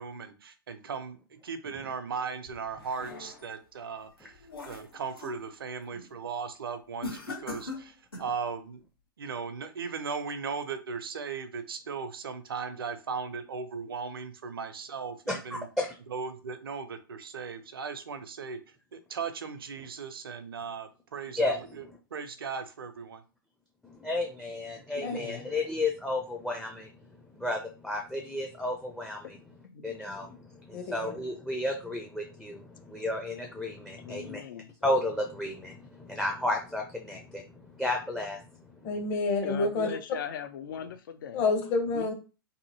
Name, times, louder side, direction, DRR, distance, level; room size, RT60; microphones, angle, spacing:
voice 1, 0.0-8.8 9.2-15.7 16.1-18.6 18.9-23.2, right 5 dB, 75° right, 10 dB, 0.5 m, -37 dB
sound 1, 2.5-3.6 4.1-5.4 5.8-6.1 7.0-8.4, left 3 dB, 90° left, 1.0 m, -41 dB
voice 2, 15.5-15.9 21.4-21.6 23.8-26.9 27.3-29.4 29.8-34.4 34.8-38.7, left 2 dB, 5° left, 3 dB, 0.4 m, -32 dB
voice 3, 25.1-25.5 29.6-30.0 34.0-34.7 39.4-41.4 41.9-42.1, left 8 dB, 65° left, 9 dB, 0.4 m, -39 dB
voice 4, 30.7-31.1 38.8-39.9 41.3-42.1, left 3 dB, 40° left, 4 dB, 0.9 m, -28 dB
2.8 x 2.6 x 2.7 m, 0.33 s
figure-of-eight pair, 105°, 12 cm